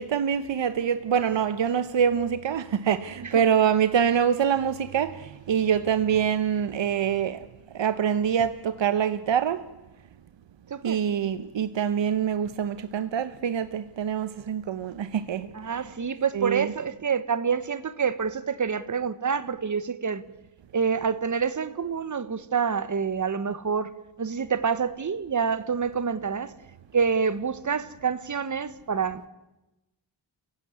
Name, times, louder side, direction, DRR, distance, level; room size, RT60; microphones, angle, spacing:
voice 1, 0.0-7.4 7.7-9.6 10.8-15.9 16.3-16.7, right 8 dB, 80° right, 1.0 m, -25 dB
voice 2, 10.7-11.0 15.5-20.2 20.7-23.9 24.2-26.5 26.9-29.3, right 6 dB, 40° right, 1.3 m, -27 dB
29.5 x 16.0 x 9.9 m
wide cardioid pair, 165°, 44 cm